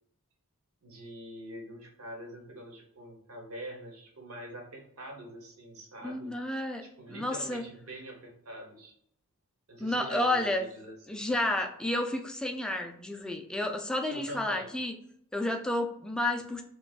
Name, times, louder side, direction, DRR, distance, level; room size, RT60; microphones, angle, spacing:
voice 1, 0.8-6.3 6.8-8.9 9.7-11.3 14.1-14.7, right 1 dB, 75° right, 1 dB, 1.1 m, -44 dB
voice 2, 6.0-6.8 7.1-7.6 9.8-10.7 11.1-14.9 15.3-16.6, left 1 dB, 5° left, 3 dB, 0.4 m, -31 dB
4.9 x 2.3 x 2.4 m, 0.69 s
head